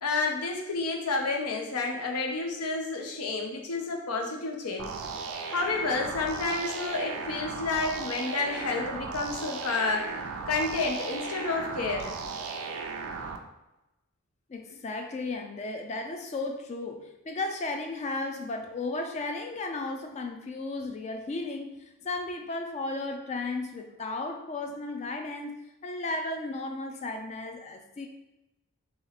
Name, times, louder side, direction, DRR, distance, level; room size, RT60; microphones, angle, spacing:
voice 1, 0.0-4.9 5.5-10.0 10.5-12.1, left 3 dB, 85° left, 2 dB, 0.7 m, -30 dB
sound 1, 4.8-13.4, right 4 dB, 75° right, 0.4 m, -36 dB
voice 2, 14.5-25.6 25.8-28.1, left 2 dB, 30° left, 5 dB, 0.3 m, -34 dB
2.9 x 2.9 x 4.0 m, 0.96 s
head